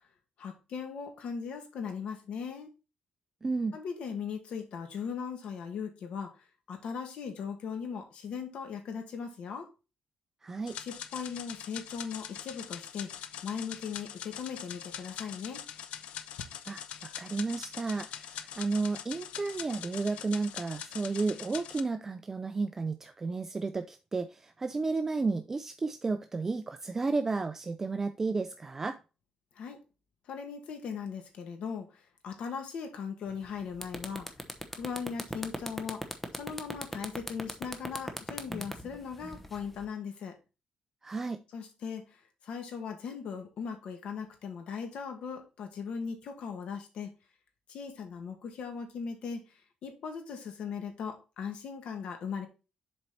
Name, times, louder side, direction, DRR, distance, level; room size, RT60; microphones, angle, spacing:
voice 1, 0.4-2.7 3.7-6.4 6.7-9.7 10.8-13.1 13.4-15.6 29.6-29.8 30.3-34.3 34.7-40.4 41.5-47.1 47.7-52.5, left 6 dB, 70° left, 1.9 m, -39 dB
voice 2, 3.4-3.8 10.4-10.8 16.7-29.0 41.0-41.4, right 3 dB, 20° right, 0.4 m, -32 dB
sound 1, 10.7-21.8, left 10 dB, 90° left, 0.6 m, -43 dB
sound 2, 33.3-33.4 33.7-39.8, equal, 5° left, 0.9 m, -38 dB
7.3 x 4.4 x 4.2 m
cardioid pair, 155°, 2 cm